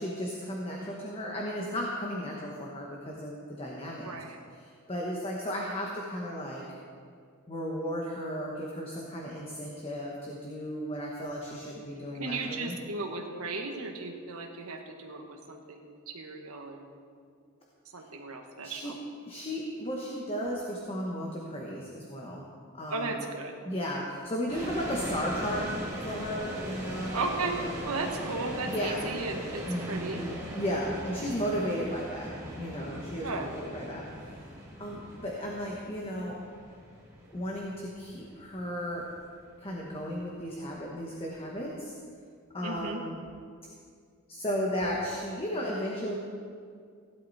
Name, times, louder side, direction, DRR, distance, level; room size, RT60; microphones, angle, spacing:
voice 1, 0.0-4.1 4.5-6.6 7.5-12.8 18.6-18.9 19.2-22.4 22.7-23.2 23.6-25.7 26.0-27.8 28.6-29.0 29.7-34.3 34.8-36.4 37.3-39.1 39.6-41.9 42.5-43.2 44.3-46.1, equal, 25° left, -2 dB, 1.3 m, -35 dB
voice 2, 4.0-4.4 12.2-16.8 17.9-18.9 22.9-23.5 27.1-27.6 27.8-30.2 33.2-33.5 42.6-43.0, right 3 dB, 80° right, 3 dB, 1.5 m, -35 dB
sound 1, 24.5-41.5, equal, 15° right, 2.4 m, -40 dB
16.5 x 11.5 x 4.3 m, 2.2 s
head